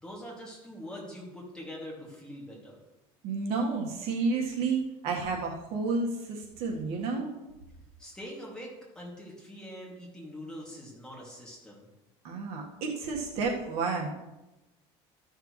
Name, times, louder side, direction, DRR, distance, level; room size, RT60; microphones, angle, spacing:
voice 1, 0.0-2.7 8.0-8.7 8.9-11.9, equal, 5° left, -4 dB, 2.4 m, -43 dB
voice 2, 3.2-7.3 12.2-14.1, right 4 dB, 60° right, 0 dB, 1.6 m, -31 dB
13.0 x 6.6 x 3.2 m, 0.99 s
cardioid pair, 155°, 12 cm